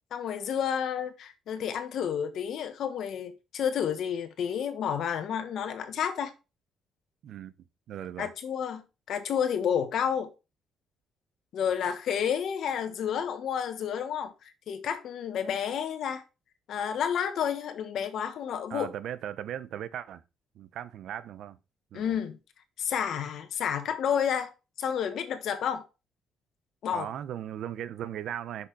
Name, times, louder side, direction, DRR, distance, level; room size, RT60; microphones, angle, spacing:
voice 1, 0.1-6.3 8.2-10.3 11.5-16.2 16.7-18.9 21.9-22.4 22.8-24.5 24.8-25.8 26.8-27.1, left 8 dB, 70° left, 1.4 m, -30 dB
voice 2, 7.9-8.3 18.7-20.2 20.5-21.6 21.9-22.2 26.9-28.7, right 10 dB, 75° right, 0.7 m, -37 dB
6.3 x 5.9 x 4.8 m
cardioid pair, 90°, 0 cm